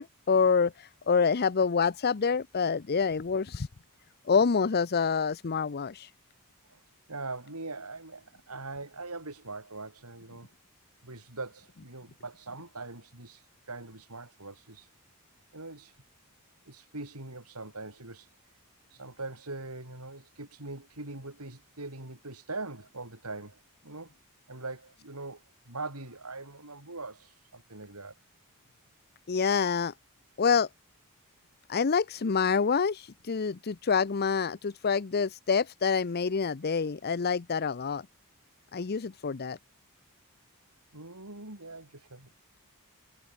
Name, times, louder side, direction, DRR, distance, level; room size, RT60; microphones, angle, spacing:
voice 1, 0.0-3.7 4.3-6.1 29.3-29.9 30.4-30.7 31.7-38.1 38.7-39.6, left 5 dB, 45° left, 0.6 m, -27 dB
voice 2, 7.1-10.5 11.0-14.9 15.5-16.0 16.7-18.3 18.9-24.1 24.5-28.2 40.9-42.3, right 3 dB, 85° right, 5.8 m, -42 dB
head